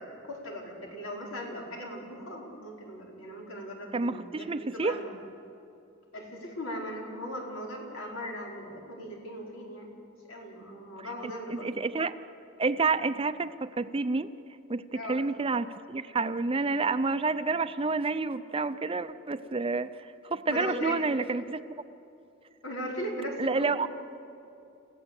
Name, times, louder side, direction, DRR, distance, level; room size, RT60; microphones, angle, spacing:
voice 1, 0.0-4.5 4.7-5.2 6.1-9.9 10.2-11.7 14.9-15.3 20.5-21.0 22.6-23.8, equal, 85° left, -1 dB, 4.8 m, -38 dB
voice 2, 3.9-5.0 11.0-12.2 12.6-14.3 14.7-21.6 23.4-23.9, right 3 dB, 25° right, 12 dB, 0.6 m, -29 dB
29.5 x 15.5 x 8.3 m, 2.7 s
head